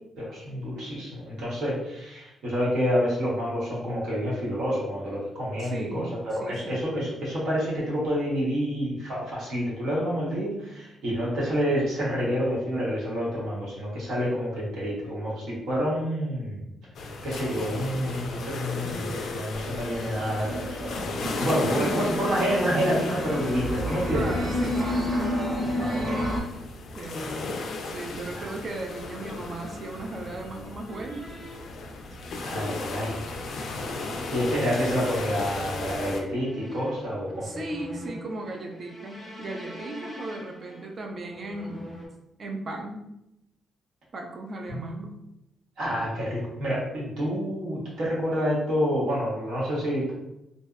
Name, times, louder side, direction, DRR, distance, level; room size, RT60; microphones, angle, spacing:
voice 1, 0.2-16.6 17.2-24.2 25.7-26.3 28.3-28.5 32.4-33.2 34.3-37.4 44.7-44.8 45.8-50.1, equal, 75° right, -6 dB, 1.1 m, -28 dB
voice 2, 5.6-6.8 21.2-22.0 24.1-25.2 26.9-31.3 37.4-41.9 42.4-43.1 44.1-45.2, right 2 dB, 40° right, 2 dB, 0.4 m, -36 dB
sound 1, 16.9-36.2, left 3 dB, 65° left, 0.3 m, -35 dB
sound 2, 19.7-26.4, equal, 15° right, 0.9 m, -30 dB
sound 3, 30.9-42.1, equal, 10° left, 0.7 m, -44 dB
2.6 x 2.0 x 2.4 m, 0.90 s
cardioid pair, 125°, 0 cm